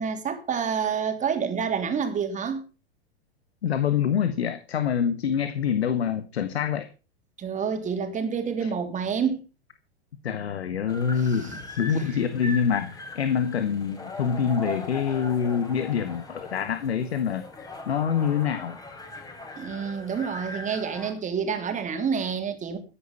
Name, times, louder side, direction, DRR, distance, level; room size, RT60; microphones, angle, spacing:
voice 1, 0.0-2.6 7.4-9.4 11.2-11.6 11.9-12.2 19.6-22.8, right 6 dB, 25° right, 3.2 m, -28 dB
voice 2, 3.6-6.9 8.6-8.7 10.2-18.8, left 7 dB, 75° left, 1.5 m, -26 dB
sound 1, 10.9-21.1, left 2 dB, 10° left, 4.1 m, -40 dB
14.5 x 10.0 x 5.7 m
hypercardioid pair, 100°, 32 cm